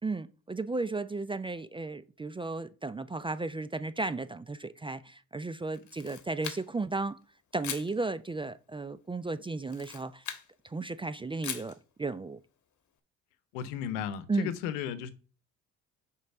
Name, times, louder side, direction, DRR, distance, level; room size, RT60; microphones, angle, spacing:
voice 1, 0.0-7.2 7.5-10.2 10.6-12.4 14.3-14.5, right 3 dB, 15° right, 0.4 m, -34 dB
Camera, 5.7-6.9 7.6-7.9 9.6-10.5 11.4-11.8, left 8 dB, 45° left, 1.3 m, -40 dB
voice 2, 13.5-15.1, left 9 dB, 80° left, 0.9 m, -34 dB
5.1 x 4.8 x 5.9 m
hypercardioid pair, 60°, 40 cm